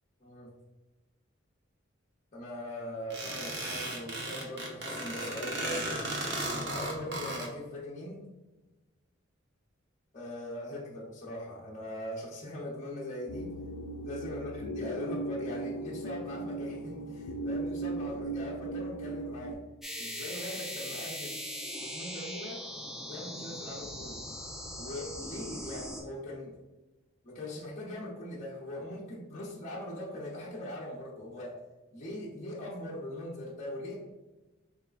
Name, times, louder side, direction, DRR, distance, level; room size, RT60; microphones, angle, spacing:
voice 1, 2.3-6.2 6.7-8.2 10.1-13.6 14.0-19.6 20.0-21.4 21.8-22.6 23.0-24.2 24.8-26.6 27.2-31.6 31.9-34.0, left 1 dB, 35° left, -6 dB, 0.6 m, -41 dB
sound 1, 3.1-7.5, right 1 dB, 55° right, 0.8 m, -35 dB
sound 2, 13.3-19.5, right 2 dB, 80° left, 0.3 m, -37 dB
sound 3, 19.8-26.0, equal, ahead, 0.4 m, -40 dB
4.0 x 3.4 x 2.4 m, 1.1 s
head